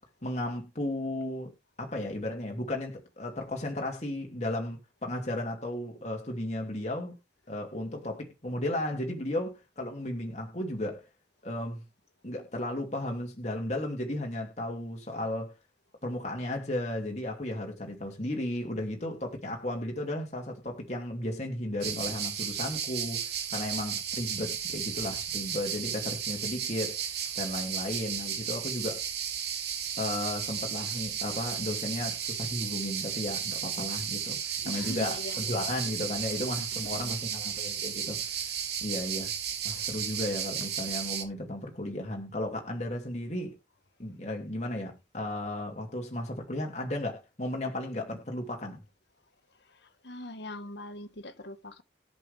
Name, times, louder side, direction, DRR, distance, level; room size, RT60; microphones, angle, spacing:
voice 1, 0.2-1.5 1.8-7.2 7.5-11.1 11.4-11.8 12.2-15.5 16.0-29.0 30.0-38.5 38.8-39.3 39.6-43.6 44.0-48.8, left 1 dB, 35° left, 2.6 m, -34 dB
sound 1, 21.8-41.2, right 8 dB, 60° right, 2.5 m, -34 dB
voice 2, 34.6-35.6 36.6-37.1 49.7-51.8, left 1 dB, 65° left, 1.4 m, -42 dB
10.5 x 7.4 x 3.4 m
head